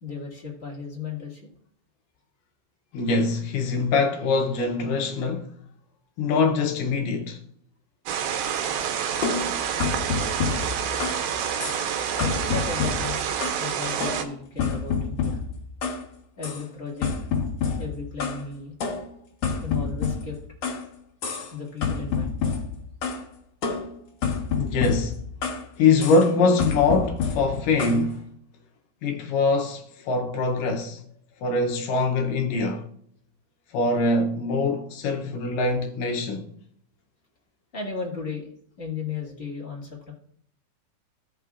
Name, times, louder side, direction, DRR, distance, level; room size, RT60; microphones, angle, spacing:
voice 1, 0.0-1.5 12.2-15.4 16.4-17.1 17.8-18.7 19.6-20.4 21.5-22.3 37.7-38.5 38.8-40.1, left 5 dB, 35° left, 0.9 m, -35 dB
voice 2, 2.9-5.5 6.2-7.4 24.6-25.2 25.8-28.3 29.0-31.0 31.4-32.9 33.7-36.5, left 3 dB, 75° left, 2.1 m, -23 dB
sound 1, 8.1-14.2, right 8 dB, 80° right, 2.6 m, -28 dB
sound 2, 9.2-11.3 11.6-11.9 12.2-13.7 14.0-16.0 16.4-16.6 17.0-18.4 18.8-20.9 21.2-21.5 21.8-23.2 23.6-25.7 26.0-26.3 26.6-28.0, left 5 dB, 60° left, 2.0 m, -29 dB
16.0 x 5.6 x 2.4 m
omnidirectional pair, 4.3 m